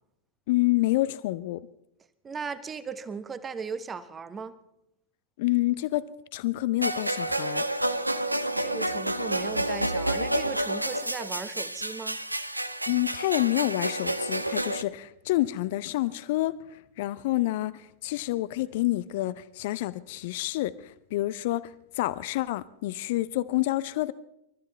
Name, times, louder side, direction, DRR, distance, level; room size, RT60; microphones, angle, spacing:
voice 1, 0.5-1.6 5.4-6.0 6.3-7.6 12.9-16.5 17.0-17.7 18.0-21.7 22.0-24.1, left 17 dB, 50° left, 17 dB, 0.5 m, -28 dB
voice 2, 2.2-4.5 8.6-12.2, right 5 dB, 20° right, 13 dB, 1.1 m, -37 dB
sound 1, 6.8-14.8, right 1 dB, 85° right, 0.6 m, -29 dB
28.5 x 13.5 x 3.4 m, 0.81 s
figure-of-eight pair, 90°, 0 cm